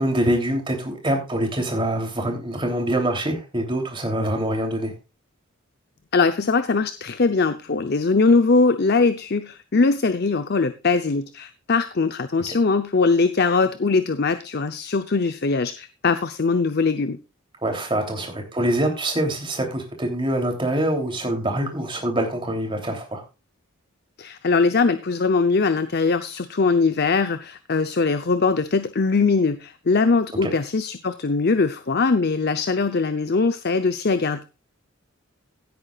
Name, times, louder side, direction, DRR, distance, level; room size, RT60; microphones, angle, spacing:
voice 1, 0.0-4.9 12.5-12.6 17.6-23.2 30.4-30.5, right 1 dB, 25° right, 3 dB, 3.1 m, -25 dB
voice 2, 6.1-17.2 24.2-34.4, left 4 dB, 50° left, 10 dB, 0.7 m, -21 dB
16.5 x 8.9 x 2.4 m, 0.29 s
head